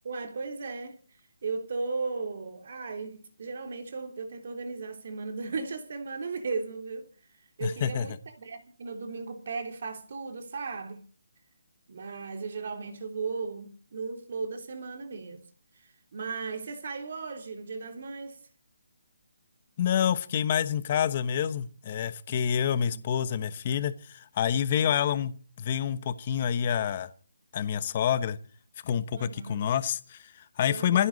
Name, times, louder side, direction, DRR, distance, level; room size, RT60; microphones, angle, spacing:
voice 1, 0.0-1.0 1.4-7.1 7.6-11.0 11.9-15.4 15.8-18.4 22.3-23.0 24.7-24.8 29.1-29.7 30.7-31.1, right 4 dB, 40° right, 3.3 m, -36 dB
voice 2, 7.6-8.1 19.8-27.1 27.5-28.4 28.8-31.1, left 8 dB, 20° left, 1.1 m, -28 dB
26.5 x 11.5 x 4.1 m
hypercardioid pair, 180°, 0 cm